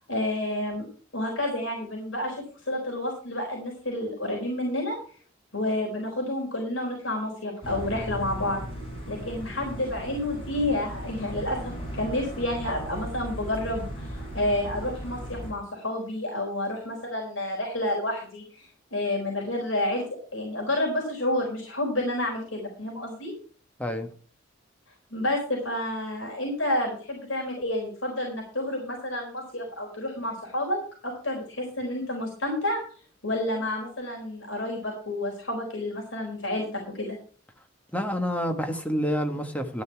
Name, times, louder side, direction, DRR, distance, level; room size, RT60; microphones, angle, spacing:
voice 1, 0.1-0.9 1.1-5.0 5.5-8.6 9.1-20.0 20.3-23.3 25.1-30.8 31.0-32.8 33.2-37.2, left 1 dB, 85° left, 4.2 m, -30 dB
sound 1, 7.6-15.5, equal, 30° left, 5.6 m, -37 dB
voice 2, 37.9-39.8, equal, 10° left, 1.4 m, -28 dB
12.5 x 9.5 x 4.6 m
head